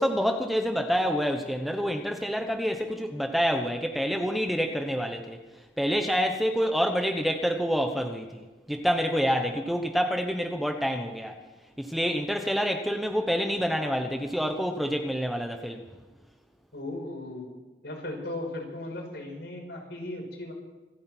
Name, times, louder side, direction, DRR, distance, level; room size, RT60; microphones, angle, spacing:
voice 1, 0.0-5.4 5.8-11.4 11.8-15.8, equal, ahead, 4 dB, 1.0 m, -27 dB
voice 2, 16.7-17.5 17.8-20.5, left 1 dB, 65° left, 0 dB, 5.9 m, -37 dB
27.0 x 9.6 x 4.5 m, 1.2 s
head